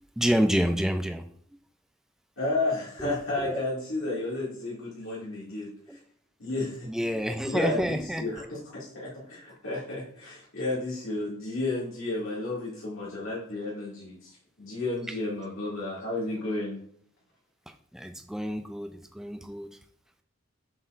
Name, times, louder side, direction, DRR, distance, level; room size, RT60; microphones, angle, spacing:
voice 1, 0.2-1.2 3.0-3.6 5.9-6.0 6.9-8.5 17.9-19.7, equal, ahead, 6 dB, 0.3 m, -28 dB
voice 2, 2.4-6.0 6.4-6.9 7.4-16.8, left 2 dB, 75° left, -8 dB, 2.2 m, -32 dB
7.6 x 6.1 x 2.5 m, 0.63 s
head